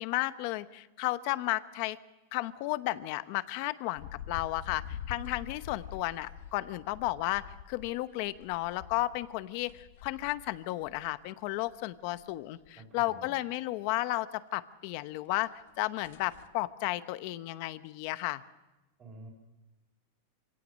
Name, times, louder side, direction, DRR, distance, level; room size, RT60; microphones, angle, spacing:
voice 1, 0.0-2.0 2.3-14.3 14.5-15.5 15.8-18.4, left 18 dB, 45° left, 13 dB, 0.8 m, -33 dB
sound 1, 4.0-11.1 11.5-12.3 12.6-12.7 13.1-13.2 15.3-15.4 15.7-15.8 16.0-16.5, left 8 dB, 70° left, 1.5 m, -46 dB
voice 2, 12.8-13.3 19.0-19.3, right 1 dB, 20° right, -3 dB, 4.0 m, -49 dB
25.5 x 17.5 x 6.4 m, 1.0 s
supercardioid pair, 160°, 0 cm